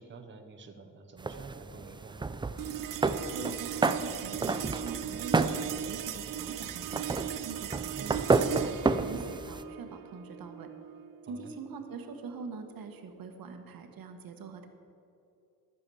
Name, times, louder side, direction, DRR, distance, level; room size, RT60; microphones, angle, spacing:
voice 1, 0.0-2.2 7.9-8.2 11.3-11.5, right 4 dB, 35° right, 5 dB, 0.9 m, -49 dB
sound 1, 1.2-9.6, right 3 dB, 15° right, 0.3 m, -31 dB
sound 2, 2.6-13.2, right 10 dB, 65° right, 0.5 m, -39 dB
voice 2, 3.0-10.7 11.2-14.7, right 5 dB, 80° right, 6 dB, 1.3 m, -44 dB
14.0 x 7.0 x 6.9 m, 2.7 s
wide cardioid pair, 135°, 34 cm